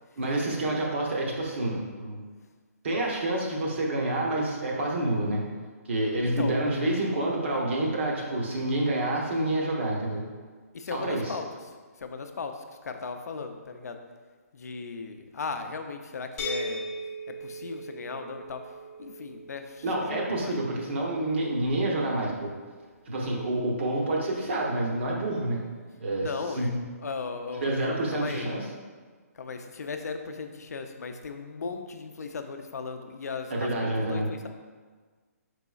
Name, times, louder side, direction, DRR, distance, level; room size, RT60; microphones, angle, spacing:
voice 1, 0.2-2.2 2.8-5.4 5.8-10.2 10.9-11.3 19.8-22.5 23.1-25.6 26.0-26.3 26.5-26.7 27.6-28.6 33.5-34.3, right 1 dB, 45° right, -2 dB, 0.9 m, -28 dB
voice 2, 6.2-6.6 10.7-11.5 12.0-14.0 14.5-16.9 17.3-18.7 19.0-20.6 26.2-26.7 27.0-28.5 29.3-34.5, left 4 dB, 75° left, 6 dB, 0.4 m, -37 dB
sound 1, 16.4-22.1, equal, 10° left, 0.4 m, -40 dB
4.7 x 4.0 x 2.3 m, 1.5 s
hypercardioid pair, 170°, 9 cm